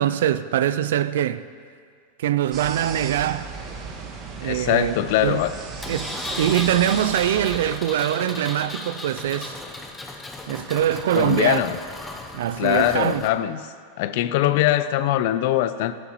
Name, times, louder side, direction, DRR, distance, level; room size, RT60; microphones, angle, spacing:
voice 1, 0.0-1.4 2.2-3.5 4.4-4.9 5.2-5.4 5.9-9.6 10.5-11.6 12.3-13.2, right 11 dB, 80° right, 0.3 m, -23 dB
sound 1, 2.5-7.8, right 5 dB, 40° right, 1.3 m, -36 dB
voice 2, 4.4-5.5 11.1-11.8 12.6-13.6 14.0-16.0, left 13 dB, 60° left, 0.4 m, -22 dB
Engine, 5.8-13.3, left 2 dB, 10° left, 0.8 m, -35 dB
11.5 x 9.4 x 3.1 m
supercardioid pair, 125°, 0 cm